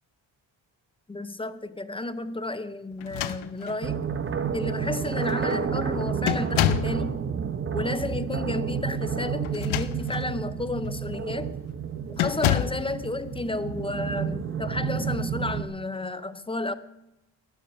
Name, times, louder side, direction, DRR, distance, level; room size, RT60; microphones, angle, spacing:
voice 1, 1.1-4.1 4.5-7.2 7.7-11.6 12.2-16.7, left 2 dB, 15° left, 0.4 m, -32 dB
sound 1, 3.0-3.9 4.8-4.9 5.2-5.6 6.3-7.0 9.4-10.3 10.8-11.1 12.2-12.9, left 13 dB, 85° left, 0.8 m, -28 dB
sound 2, 3.8-15.6, right 7 dB, 25° right, 0.9 m, -30 dB
12.0 x 12.0 x 6.1 m
cardioid pair, 155°, 46 cm